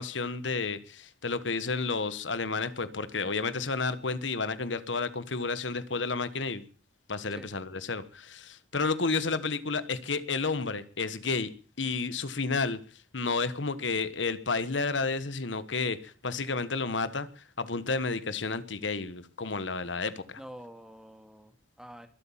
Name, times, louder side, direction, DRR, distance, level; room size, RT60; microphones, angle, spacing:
voice 1, 0.0-6.6 7.1-11.5 11.8-12.8 13.1-20.4, left 4 dB, 85° left, 14 dB, 1.3 m, -31 dB
voice 2, 20.4-22.1, equal, 5° right, 7 dB, 2.0 m, -47 dB
22.5 x 8.4 x 7.3 m, 0.40 s
head